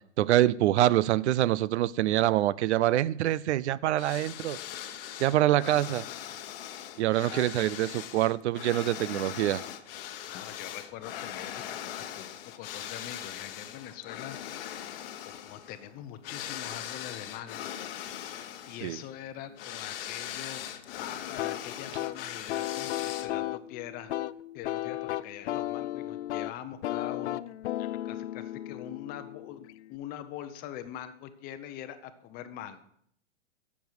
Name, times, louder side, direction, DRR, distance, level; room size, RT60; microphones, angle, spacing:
voice 1, 0.2-4.6 5.2-6.0 7.0-9.6 18.8-19.0, right 14 dB, 65° right, 0.5 m, -25 dB
sound 1, 4.0-23.5, left 11 dB, 50° left, 1.0 m, -40 dB
voice 2, 5.5-5.9 7.2-7.7 10.3-14.4 15.2-17.7 18.7-20.6 21.0-24.1 24.5-27.4 27.8-32.8, left 11 dB, 25° left, 0.8 m, -43 dB
sound 2, 21.4-30.0, left 14 dB, 70° left, 0.5 m, -35 dB
11.5 x 7.4 x 4.7 m
hypercardioid pair, 140°, 36 cm